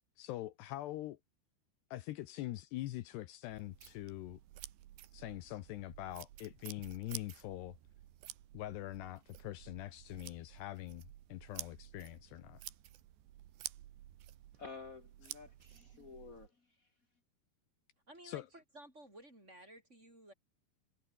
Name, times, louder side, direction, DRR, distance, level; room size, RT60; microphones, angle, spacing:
voice 1, 0.2-1.2 1.9-4.4 5.1-7.8 8.5-12.6 18.2-18.5, left 15 dB, 75° left, 3.0 m, -44 dB
sound 1, 3.5-16.5, right 13 dB, 75° right, 3.8 m, -52 dB
voice 2, 14.5-17.0, left 4 dB, 35° left, 1.4 m, -52 dB
voice 3, 18.1-20.3, right 1 dB, 15° right, 7.8 m, -55 dB
omnidirectional pair, 5.1 m